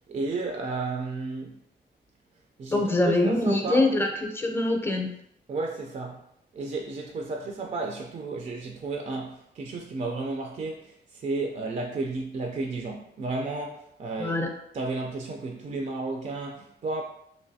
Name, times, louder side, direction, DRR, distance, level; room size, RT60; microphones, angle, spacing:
voice 1, 0.1-1.6 2.6-3.9 5.5-6.2 6.5-14.4 14.7-17.0, right 3 dB, 40° right, 1 dB, 0.4 m, -32 dB
voice 2, 2.7-5.1 14.2-14.5, left 2 dB, 10° left, 3 dB, 0.5 m, -24 dB
3.2 x 2.6 x 2.6 m, 0.72 s
cardioid pair, 95°, 19 cm